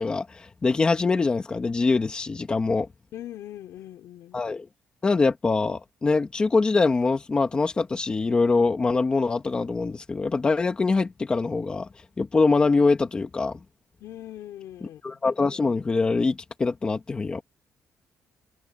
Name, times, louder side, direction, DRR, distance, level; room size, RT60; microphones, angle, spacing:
voice 1, 0.0-2.9 4.3-4.7 5.0-11.9 12.2-13.6 15.0-17.4, left 4 dB, 20° left, 1.5 m, -23 dB
voice 2, 3.1-4.4 14.0-15.2, left 12 dB, 80° left, 4.4 m, -41 dB
cardioid pair, 175°, 5 cm